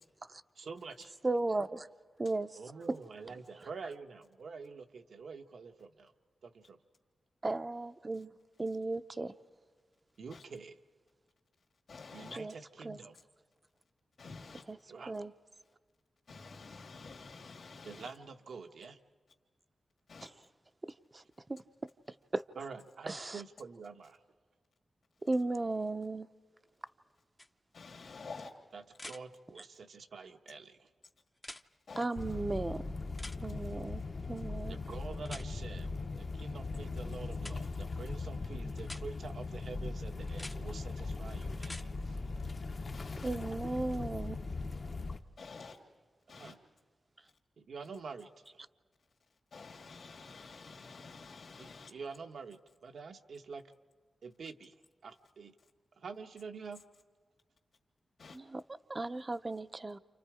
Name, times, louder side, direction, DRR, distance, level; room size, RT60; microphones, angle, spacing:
voice 1, 0.6-1.1 2.5-6.1 6.4-6.8 10.2-10.8 12.1-13.2 14.9-15.2 17.8-19.0 22.5-24.2 28.7-30.9 34.7-42.2 46.3-46.6 47.6-48.6 51.6-53.6 54.2-55.5 56.0-56.8, right 5 dB, 75° right, 1.1 m, -47 dB
voice 2, 1.2-1.9 2.2-2.5 7.4-8.3 8.6-9.3 12.4-12.5 12.8-13.0 14.7-14.8 15.1-15.3 20.8-21.2 21.5-21.6 22.3-22.4 23.1-23.4 25.2-26.3 32.0-32.8 33.4-34.0 34.3-34.8 43.2-44.4 58.3-58.6 58.9-60.0, right 2 dB, 25° right, 0.6 m, -35 dB
voice 3, 11.9-12.4 14.2-14.6 16.3-18.1 20.1-20.3 27.7-28.5 31.9-32.1 42.9-43.3 45.4-45.8 46.3-46.5 49.5-51.9 58.2-58.4, left 4 dB, 65° left, 2.0 m, -49 dB
sound 1, 27.4-27.5 28.9-29.2 31.4-31.6 33.2-33.4 35.2-35.5 37.4-37.6 38.8-39.0 40.3-40.6 41.5-41.9 43.9-44.0, left 1 dB, 15° left, 0.6 m, -46 dB
sound 2, 32.2-45.2, left 3 dB, 45° left, 0.9 m, -39 dB
30.0 x 28.0 x 4.9 m
wide cardioid pair, 110°, 0 cm